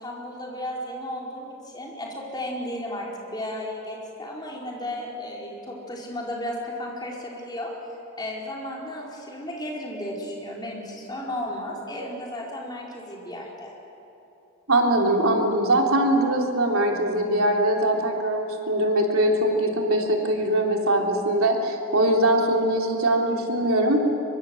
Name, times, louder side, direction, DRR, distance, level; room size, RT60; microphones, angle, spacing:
voice 1, 0.0-7.7 8.2-13.7, left 1 dB, 20° left, -3 dB, 4.7 m, -34 dB
voice 2, 14.7-24.0, right 1 dB, 90° right, 1 dB, 3.5 m, -22 dB
24.0 x 23.5 x 7.9 m, 3.0 s
head